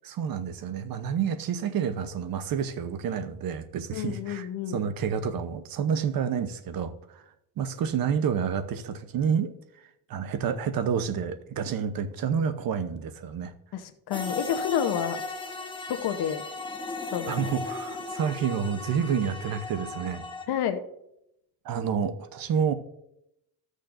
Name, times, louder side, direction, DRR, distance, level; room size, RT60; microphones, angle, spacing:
voice 1, 0.0-7.2 7.6-9.5 10.1-13.5 17.3-20.2 21.6-22.7, right 7 dB, 55° right, 11 dB, 0.9 m, -29 dB
voice 2, 3.9-4.8 13.7-15.2 15.9-16.4 17.1-17.4 20.5-20.8, left 9 dB, 70° left, 9 dB, 1.0 m, -29 dB
sound 1, 14.1-20.4, left 3 dB, 10° left, 1.0 m, -37 dB
14.0 x 6.6 x 2.6 m, 0.81 s
cardioid pair, 105°, 40 cm